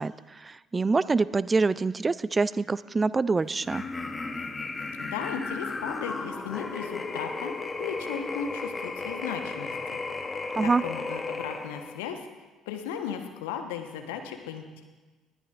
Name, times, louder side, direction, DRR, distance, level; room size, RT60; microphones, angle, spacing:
voice 1, 0.0-3.8 10.5-10.8, right 4 dB, 25° right, 19 dB, 0.3 m, -25 dB
sound 1, 3.6-12.0, left 3 dB, 25° left, 1.0 m, -34 dB
voice 2, 5.0-7.5 7.8-10.0 10.6-12.3 12.7-14.8, left 7 dB, 70° left, 5 dB, 1.2 m, -36 dB
20.0 x 13.0 x 2.5 m, 1.3 s
figure-of-eight pair, 50°, 0 cm